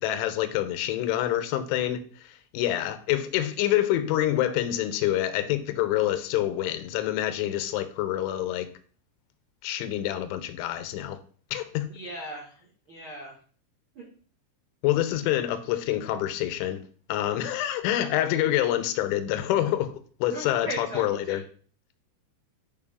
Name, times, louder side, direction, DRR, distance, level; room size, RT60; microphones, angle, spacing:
voice 1, 0.0-2.0 2.5-8.7 9.6-11.2 11.5-11.9 14.8-16.8 17.1-21.4, left 13 dB, 85° left, 3.1 m, -27 dB
voice 2, 11.9-12.5 12.9-13.3 13.9-14.1 18.4-18.5 20.3-21.4, right 1 dB, 75° right, 1.1 m, -37 dB
9.9 x 4.7 x 3.6 m
omnidirectional pair, 5.4 m